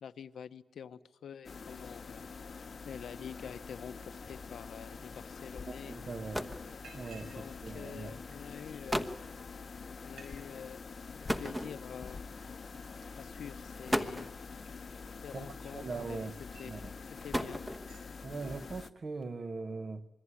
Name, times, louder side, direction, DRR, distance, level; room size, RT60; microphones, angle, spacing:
voice 1, 0.0-2.3 2.8-6.0 7.2-9.2 10.0-10.8 11.1-12.2 13.2-14.3 15.2-16.3 16.6-16.7 17.0-17.6, left 8 dB, 75° left, 0.9 m, -47 dB
sound 1, 1.4-18.9, left 5 dB, 40° left, 0.9 m, -46 dB
voice 2, 5.7-6.5 6.9-8.1 15.3-15.5 15.7-16.4 16.6-16.9 18.2-20.1, right 3 dB, 40° right, 1.2 m, -41 dB
sound 2, 6.1-6.7 7.7-7.9 8.6-8.7 8.9-9.3 11.3-12.1 13.1-13.2 13.7-14.4 15.6-16.1 17.0-18.0, equal, 5° right, 1.1 m, -35 dB
Liquid, 6.8-7.4 7.7-8.6 9.3-9.4 9.7-9.8 10.0-10.3 10.6-11.0 11.5-15.3 15.8-16.8 17.2-17.4 17.7-18.1, right 4 dB, 75° right, 6.7 m, -60 dB
26.0 x 22.5 x 9.9 m
wide cardioid pair, 165°, 0 cm